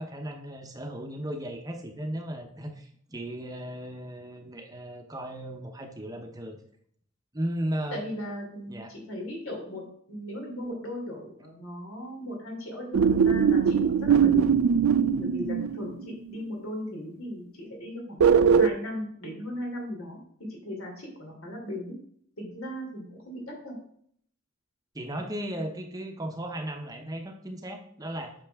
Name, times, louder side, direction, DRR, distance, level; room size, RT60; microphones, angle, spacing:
voice 1, 0.0-6.6 7.3-8.0 8.7-9.0 24.9-28.3, right 1 dB, 15° right, 4 dB, 0.8 m, -36 dB
voice 2, 7.9-9.8 10.1-14.5 15.2-20.2 20.5-21.9 22.4-23.7, equal, 80° left, 0 dB, 3.0 m, -37 dB
sound 1, 12.9-16.1 18.2-18.7, right 6 dB, 80° right, 0.4 m, -21 dB
8.7 x 6.1 x 3.5 m, 0.64 s
head